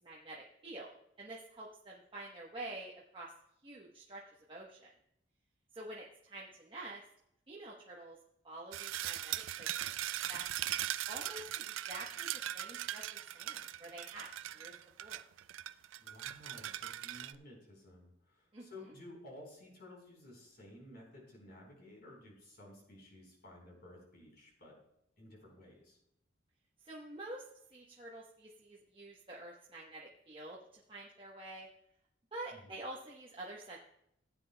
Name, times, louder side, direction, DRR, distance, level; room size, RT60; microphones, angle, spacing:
voice 1, 0.0-3.3 3.6-4.9 5.7-7.0 7.5-8.2 8.4-9.9 10.3-10.8 11.1-15.2 18.5-18.7 26.8-27.5 27.7-31.7 32.3-33.8, right 2 dB, 25° right, -4 dB, 1.1 m, -48 dB
sound 1, 8.7-17.3, right 13 dB, 80° right, 0.4 m, -40 dB
voice 2, 16.0-24.8 25.2-26.0 32.5-32.7, left 1 dB, 55° left, -1 dB, 4.3 m, -54 dB
16.0 x 9.2 x 2.3 m, 0.77 s
head